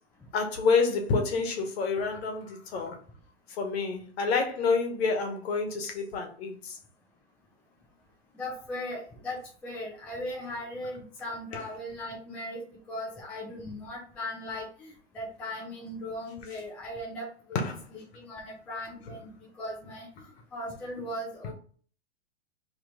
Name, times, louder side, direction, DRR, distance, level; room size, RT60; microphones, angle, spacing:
voice 1, 0.3-3.0 3.6-6.7 17.5-17.8, left 4 dB, 60° left, 1.2 m, -28 dB
voice 2, 8.3-17.6 17.9-21.5, left 1 dB, 5° left, 0.4 m, -38 dB
3.0 x 2.9 x 3.9 m
hypercardioid pair, 135°, 36 cm